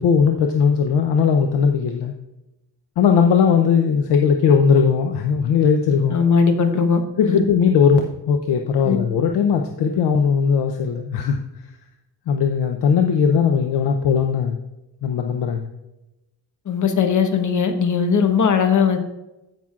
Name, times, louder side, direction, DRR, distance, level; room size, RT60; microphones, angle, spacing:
voice 1, 0.0-2.1 3.0-6.2 7.2-11.4 12.3-14.6 15.0-15.7, left 6 dB, 80° left, 4 dB, 0.8 m, -18 dB
voice 2, 6.1-7.4 8.8-9.0 16.6-19.0, left 6 dB, 45° left, 6 dB, 1.1 m, -19 dB
15.5 x 6.1 x 2.5 m, 0.97 s
cardioid pair, 135°, 41 cm